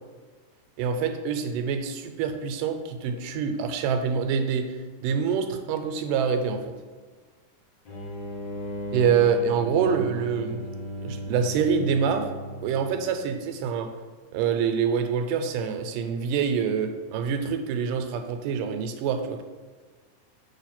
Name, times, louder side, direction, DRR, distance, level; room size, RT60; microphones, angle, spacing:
voice 1, 0.8-4.8 5.0-6.8 8.9-10.6 11.0-12.3 12.6-13.9 14.3-19.4, right 6 dB, 85° right, 6 dB, 2.2 m, -26 dB
sound 1, 7.9-13.2, equal, 60° left, 2.6 m, -36 dB
6.4 x 3.2 x 5.8 m, 1.4 s
omnidirectional pair, 3.8 m